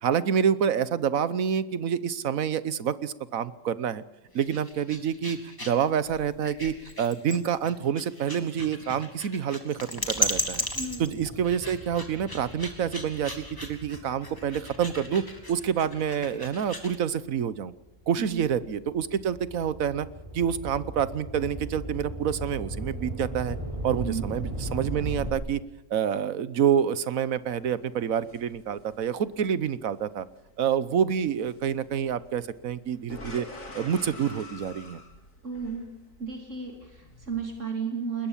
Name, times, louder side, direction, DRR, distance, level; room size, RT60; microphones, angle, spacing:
voice 1, 0.0-4.0 4.3-10.6 11.0-17.7 18.1-20.1 20.3-23.6 23.8-25.6 25.9-30.3 30.6-33.5 33.7-35.0, right 8 dB, 85° right, 16 dB, 1.4 m, -27 dB
sound 1, 4.3-17.0, equal, 15° left, 2.7 m, -36 dB
sound 2, 10.0-16.7 17.3-25.3, right 1 dB, 25° right, 3.9 m, -38 dB
sound 3, 27.3-37.6, left 2 dB, 75° left, 3.5 m, -48 dB
voice 2, 35.4-35.9 36.2-38.3, right 5 dB, 65° right, 2 dB, 3.4 m, -33 dB
21.0 x 20.0 x 7.3 m, 0.95 s
omnidirectional pair, 1.4 m